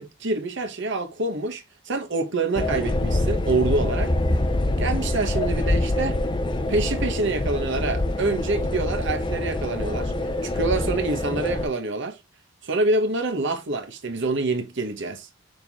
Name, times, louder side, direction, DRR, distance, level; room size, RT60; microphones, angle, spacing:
voice 1, 0.0-4.1 4.8-6.2 6.7-10.1 10.4-12.2 12.6-15.3, right 3 dB, 60° right, 1.1 m, -26 dB
sound 1, 2.5-11.7, left 1 dB, 20° left, 0.7 m, -25 dB
6.7 x 4.1 x 3.5 m
head